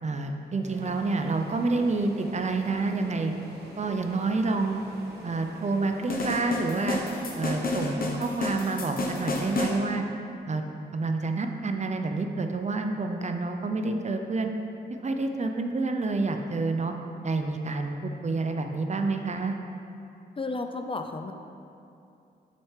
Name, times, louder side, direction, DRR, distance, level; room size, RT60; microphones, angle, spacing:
voice 1, 0.0-3.3 3.8-4.8 5.2-7.0 7.3-10.0 10.5-10.6 10.9-14.5 15.0-16.9 17.2-18.0 18.2-19.6, right 3 dB, 40° right, 5 dB, 0.6 m, -28 dB
sound 1, 0.6-8.6, right 1 dB, 65° right, 1.1 m, -46 dB
sound 2, 6.1-9.8, left 2 dB, 55° left, 1.0 m, -30 dB
voice 2, 20.4-21.3, left 3 dB, 30° left, 6 dB, 0.5 m, -32 dB
6.8 x 6.5 x 3.3 m, 2.6 s
cardioid pair, 55°, 18 cm